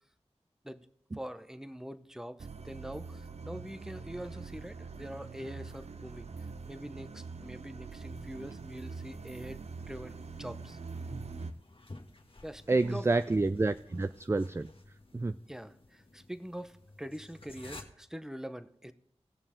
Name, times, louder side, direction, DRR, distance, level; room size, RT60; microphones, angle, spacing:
voice 1, 1.1-6.3 6.7-10.8 12.4-13.1 15.5-18.9, equal, 5° right, 12 dB, 0.8 m, -44 dB
sound 1, 2.4-11.5, right 4 dB, 70° right, 0.7 m, -44 dB
sound 2, 8.1-17.8, left 2 dB, 55° left, 1.5 m, -54 dB
voice 2, 12.7-14.7 15.1-15.3, right 3 dB, 25° right, 13 dB, 0.3 m, -28 dB
18.0 x 6.7 x 3.7 m, 0.75 s
wide cardioid pair, 45°, 11 cm